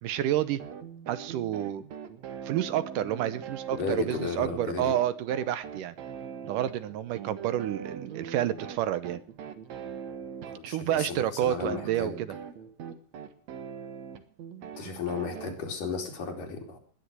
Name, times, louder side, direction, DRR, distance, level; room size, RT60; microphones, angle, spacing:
voice 1, 0.0-0.6 1.1-1.8 2.4-5.9 6.4-9.2 10.6-12.3, right 12 dB, 75° right, 14 dB, 2.3 m, -29 dB
sound 1, 0.6-15.6, right 7 dB, 60° right, 2.3 m, -41 dB
voice 2, 3.7-4.9 10.5-12.2 14.8-16.8, left 5 dB, 70° left, 3 dB, 4.7 m, -34 dB
20.0 x 9.9 x 6.2 m, 0.42 s
omnidirectional pair, 4.0 m